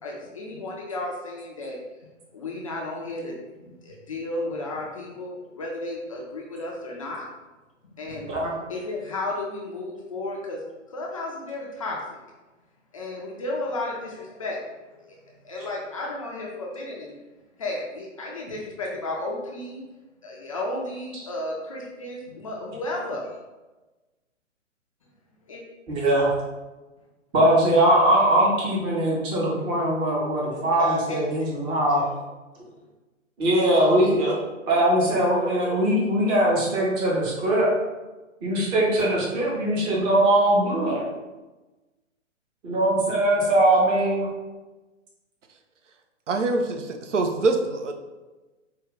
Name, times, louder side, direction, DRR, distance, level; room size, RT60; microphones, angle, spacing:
voice 1, 0.0-1.8 2.3-3.4 3.8-7.2 8.0-8.4 8.7-10.6 10.9-12.2 12.9-17.1 17.6-19.8 20.2-23.4 25.4-25.6 30.4-32.1, left 2 dB, 30° left, -2 dB, 0.4 m, -33 dB
voice 2, 25.9-26.3 27.3-32.0 33.4-34.4 34.7-37.7 38.4-41.1 42.6-44.3, right 1 dB, 15° right, -4 dB, 0.6 m, -21 dB
voice 3, 46.3-47.9, right 3 dB, 70° right, 5 dB, 0.6 m, -24 dB
4.5 x 2.2 x 3.7 m, 1.2 s
figure-of-eight pair, 125°, 39 cm